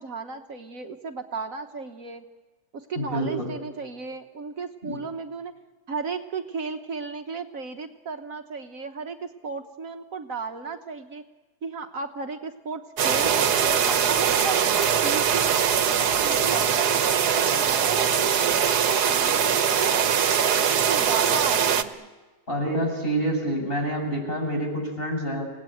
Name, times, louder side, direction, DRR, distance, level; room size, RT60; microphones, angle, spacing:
voice 1, 0.0-2.2 2.7-5.5 5.9-11.2 11.6-18.3 18.9-20.5 20.9-22.1, right 5 dB, 60° right, 6 dB, 1.5 m, -35 dB
voice 2, 2.9-3.5 4.8-5.0 22.5-25.5, right 1 dB, 35° left, 1 dB, 7.4 m, -27 dB
sound 1, 13.0-21.8, right 7 dB, 80° right, 1.6 m, -22 dB
sound 2, 13.6-17.8, right 1 dB, ahead, 2.4 m, -44 dB
29.0 x 18.5 x 9.1 m, 1.3 s
omnidirectional pair, 1.7 m